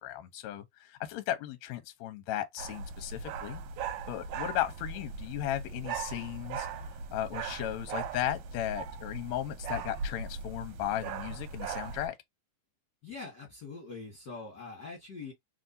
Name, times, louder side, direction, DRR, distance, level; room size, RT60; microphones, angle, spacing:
voice 1, 0.0-3.6 4.1-6.7 7.1-12.2, left 12 dB, 75° left, 1.8 m, -35 dB
sound 1, 2.6-12.1, right 5 dB, 85° right, 2.1 m, -39 dB
voice 2, 13.0-15.3, left 4 dB, 45° left, 1.8 m, -43 dB
4.2 x 3.4 x 2.6 m
omnidirectional pair, 3.5 m